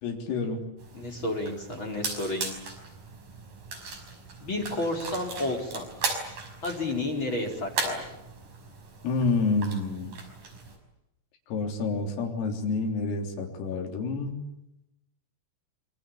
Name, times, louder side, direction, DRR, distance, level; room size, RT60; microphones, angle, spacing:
voice 1, 0.0-0.6 9.0-10.2 11.5-14.4, left 3 dB, 80° left, 1 dB, 6.2 m, -28 dB
sound 1, 0.8-10.8, right 4 dB, 45° right, 6.9 m, -38 dB
voice 2, 0.9-2.6 4.4-5.9 6.6-8.0, left 2 dB, 25° left, 3 dB, 4.6 m, -31 dB
27.0 x 24.5 x 8.7 m, 0.85 s
omnidirectional pair, 5.8 m